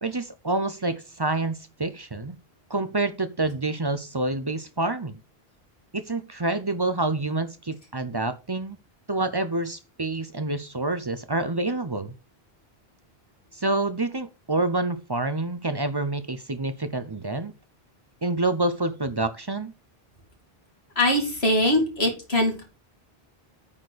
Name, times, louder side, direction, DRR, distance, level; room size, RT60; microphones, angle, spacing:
voice 1, 0.0-2.4 2.7-5.2 5.9-8.8 9.1-12.1 13.5-17.5 18.2-19.7, right 2 dB, 30° right, 0.6 m, -27 dB
voice 2, 21.0-22.6, left 1 dB, 85° left, 3.1 m, -22 dB
8.7 x 4.3 x 6.5 m
omnidirectional pair, 1.0 m